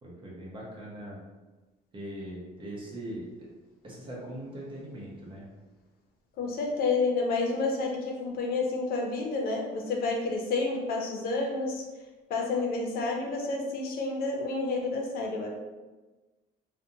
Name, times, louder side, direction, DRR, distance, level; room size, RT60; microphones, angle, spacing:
voice 1, 0.0-1.2 1.9-3.5 3.8-5.5, right 1 dB, 30° right, -4 dB, 0.7 m, -41 dB
voice 2, 6.4-11.8 12.3-15.5, left 3 dB, 60° left, 0 dB, 0.6 m, -29 dB
2.4 x 2.1 x 2.7 m, 1.2 s
cardioid pair, 110°, 17 cm